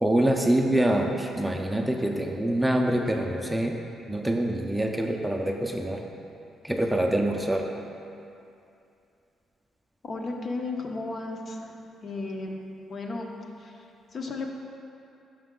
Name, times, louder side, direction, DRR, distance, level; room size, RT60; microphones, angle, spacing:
voice 1, 0.0-3.8 4.1-6.0 6.6-7.7, right 1 dB, 5° right, 2 dB, 0.4 m, -25 dB
voice 2, 10.0-11.7 12.0-12.6 12.9-13.3 13.6-13.9 14.1-14.5, left 3 dB, 50° left, 1 dB, 0.7 m, -34 dB
5.8 x 5.4 x 3.7 m, 2.7 s
cardioid pair, 90°, 0 cm